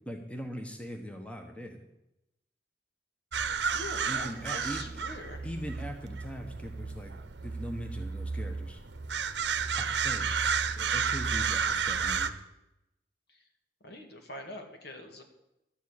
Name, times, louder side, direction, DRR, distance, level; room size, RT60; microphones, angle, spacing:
voice 1, 0.0-1.8 4.0-4.8 5.4-7.1 7.4-8.8 9.7-10.3 10.8-12.4, equal, 5° left, 4 dB, 1.2 m, -40 dB
sound 1, 3.3-12.3, right 6 dB, 75° right, 0.9 m, -32 dB
voice 2, 3.7-5.5 13.8-15.2, left 2 dB, 65° left, 4 dB, 2.2 m, -43 dB
12.5 x 7.3 x 8.8 m, 0.88 s
head